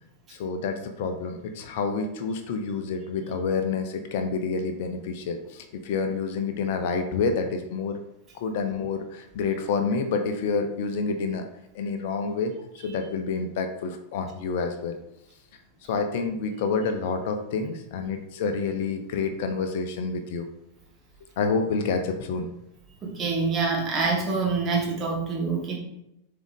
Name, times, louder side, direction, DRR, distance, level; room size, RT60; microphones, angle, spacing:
voice 1, 0.3-8.0 8.3-11.4 11.7-15.0 15.9-20.5 21.4-22.5, left 4 dB, 50° left, 6 dB, 0.6 m, -28 dB
voice 2, 23.0-25.8, right 4 dB, 25° right, -1 dB, 1.7 m, -26 dB
7.1 x 3.8 x 3.6 m, 0.86 s
figure-of-eight pair, 90°, 0 cm